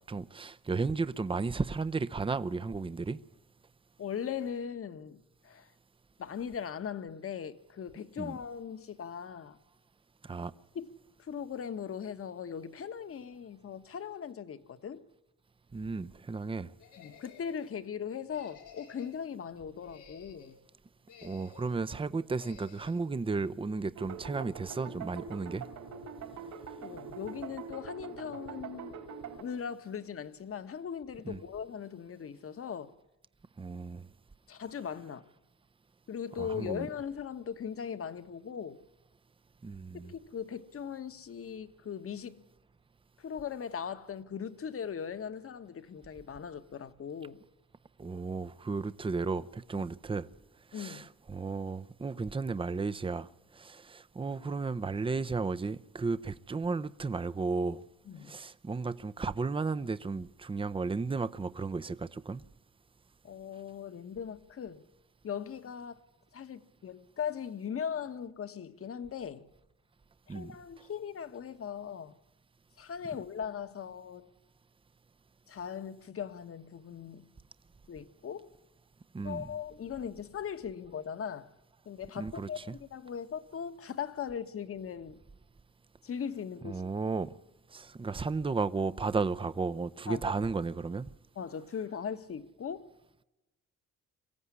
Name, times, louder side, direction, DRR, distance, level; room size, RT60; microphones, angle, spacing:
voice 1, 0.1-3.2 8.2-8.4 10.2-10.5 15.7-16.7 21.2-25.7 31.3-31.4 33.6-34.1 36.4-36.9 39.6-40.1 48.0-50.3 50.7-57.8 58.2-62.4 70.3-70.5 79.1-79.5 82.2-82.7 86.6-87.3 87.7-91.1, right 4 dB, 15° right, 0.7 m, -34 dB
voice 2, 4.0-5.7 6.2-9.6 10.7-10.9 11.2-15.0 17.0-20.6 26.8-29.0 29.4-32.9 34.5-35.3 36.1-38.8 40.0-42.4 43.2-47.4 50.7-51.1 58.0-58.4 63.2-64.8 65.2-66.0 66.3-69.4 70.3-72.1 72.8-74.3 75.5-77.3 77.9-78.5 79.2-81.5 81.8-85.2 86.0-86.8 90.1-90.3 91.3-92.9, left 7 dB, 50° left, 1.4 m, -39 dB
sound 1, 16.8-17.7 18.3-19.3 19.7-20.6 21.1-21.8 22.4-23.0, left 7 dB, 85° left, 3.7 m, -54 dB
sound 2, 24.0-29.4, right 6 dB, 75° right, 4.8 m, -44 dB
23.5 x 15.5 x 9.8 m
cardioid pair, 90°, 30 cm